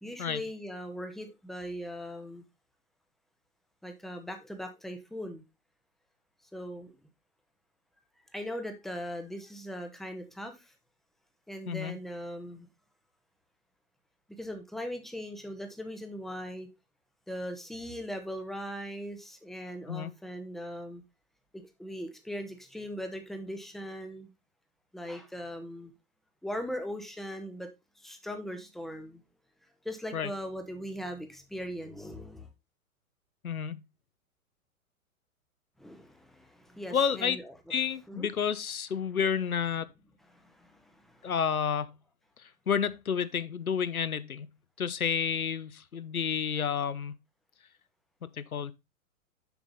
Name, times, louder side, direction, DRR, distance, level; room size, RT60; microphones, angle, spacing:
voice 1, 0.0-2.4 3.8-5.4 6.5-6.9 8.3-10.7 11.5-12.7 14.4-16.7 17.3-21.0 21.5-24.3 24.9-25.9 26.4-27.7 28.0-29.2 29.8-32.5 35.8-37.5 38.1-38.3 40.3-41.3, equal, ahead, 0.5 m, -39 dB
voice 2, 33.4-33.8 36.9-37.4 37.7-39.9 41.2-41.9 42.7-44.5 44.8-47.1 48.4-48.7, left 7 dB, 80° left, 0.8 m, -30 dB
6.9 x 5.7 x 4.0 m
figure-of-eight pair, 110°, 42 cm